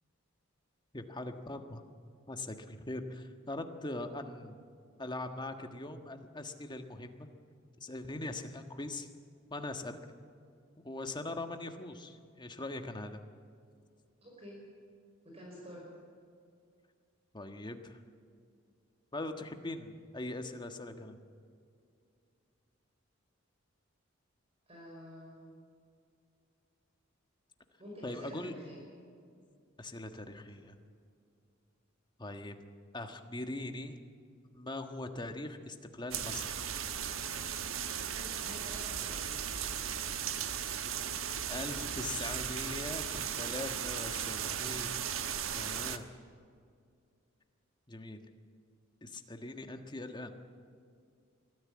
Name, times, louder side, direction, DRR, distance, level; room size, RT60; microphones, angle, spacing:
voice 1, 0.9-1.8 2.3-4.6 5.0-7.3 7.8-9.1 9.5-10.0 10.8-13.2 17.3-18.0 19.1-21.2 28.0-28.5 29.8-30.7 32.2-32.6 32.9-34.0 34.5-36.6 41.5-44.9 45.5-46.0 47.9-48.2 49.0-50.3, left 2 dB, 20° left, 6 dB, 1.4 m, -41 dB
voice 2, 14.2-14.6 15.2-15.9 24.7-25.6 27.8-28.9 38.0-39.4, equal, 30° right, -3 dB, 5.5 m, -49 dB
sound 1, 36.1-46.0, right 8 dB, 85° right, 1.2 m, -36 dB
22.5 x 14.5 x 8.7 m, 2.3 s
head